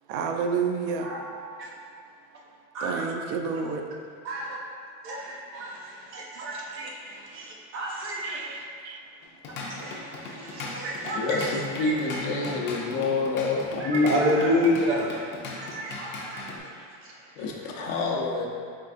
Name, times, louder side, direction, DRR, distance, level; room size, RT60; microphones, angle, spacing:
voice 1, 0.1-1.1 2.8-3.8 8.2-9.0, right 5 dB, 85° right, 4 dB, 0.5 m, -30 dB
voice 2, 2.7-3.1 4.2-4.6 5.0-8.6 9.6-12.2 13.8-15.2 15.6-18.0, equal, 35° right, -2 dB, 0.6 m, -30 dB
Drum kit / Drum, 9.2-16.6, left 3 dB, 30° left, 0.4 m, -38 dB
voice 3, 11.1-14.3 17.4-18.5, left 3 dB, 85° left, -1 dB, 0.8 m, -27 dB
4.7 x 3.3 x 2.5 m, 2.3 s
cardioid pair, 160°, 38 cm